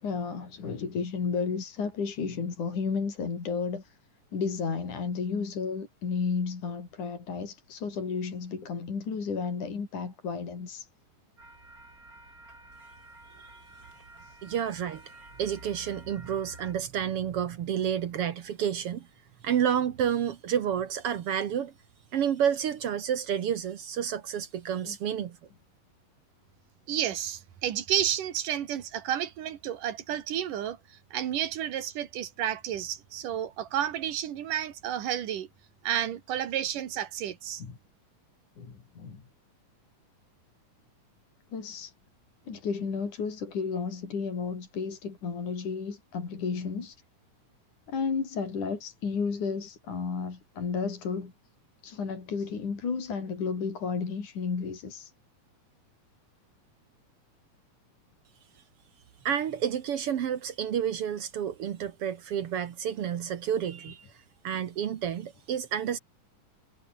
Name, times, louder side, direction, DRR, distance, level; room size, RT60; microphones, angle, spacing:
voice 1, 0.0-4.0 4.3-10.9 14.2-14.4 24.8-25.0 37.6-37.8 38.6-39.2 41.5-41.9 42.5-47.0 47.9-51.3 51.8-55.1, left 5 dB, 65° left, 5.9 m, -32 dB
sound 1, 11.4-16.7, right 2 dB, 25° right, 6.9 m, -50 dB
voice 2, 14.4-15.0 15.4-19.1 19.4-21.7 22.1-25.4 59.2-64.1 64.4-66.0, right 9 dB, 60° right, 1.7 m, -30 dB
voice 3, 26.9-30.8 31.1-35.5 35.8-37.6, right 10 dB, 80° right, 3.4 m, -31 dB
omnidirectional pair, 3.7 m